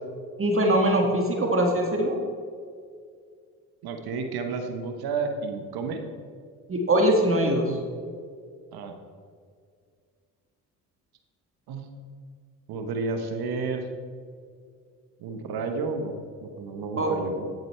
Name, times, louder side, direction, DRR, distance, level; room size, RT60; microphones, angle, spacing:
voice 1, 0.4-2.2 6.7-7.8 17.0-17.1, right 1 dB, 35° right, 1 dB, 1.7 m, -22 dB
voice 2, 3.8-6.0 8.7-8.9 11.7-11.9 12.7-13.9 15.2-17.5, right 4 dB, 70° right, 5 dB, 1.2 m, -31 dB
9.3 x 7.8 x 4.5 m, 2.1 s
supercardioid pair, 60°, 39 cm